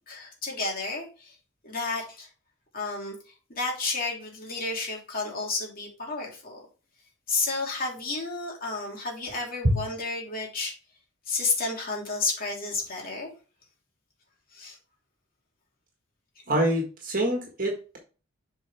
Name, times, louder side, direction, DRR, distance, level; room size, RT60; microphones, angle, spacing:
voice 1, 0.1-1.3 1.6-2.3 2.7-3.2 3.5-6.6 7.3-10.7 11.3-13.3 14.5-14.8 16.5-16.6, left 3 dB, 45° left, -1 dB, 2.8 m, -31 dB
voice 2, 16.5-18.0, right 1 dB, 45° right, 1 dB, 1.6 m, -25 dB
7.4 x 4.7 x 3.5 m, 0.35 s
head